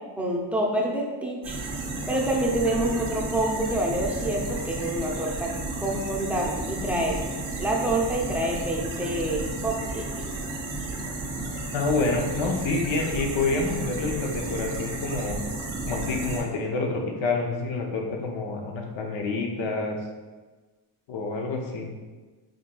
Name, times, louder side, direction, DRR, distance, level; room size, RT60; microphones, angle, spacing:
voice 1, 0.2-1.6 2.1-5.5 5.8-7.2 7.6-10.1, right 1 dB, 5° right, -2 dB, 0.6 m, -27 dB
sound 1, 1.4-16.4, right 2 dB, 85° right, 1.0 m, -33 dB
voice 2, 11.7-15.4 15.9-20.0 21.1-21.9, left 3 dB, 70° left, 1 dB, 0.7 m, -28 dB
4.9 x 2.8 x 2.2 m, 1.3 s
cardioid pair, 95°, 47 cm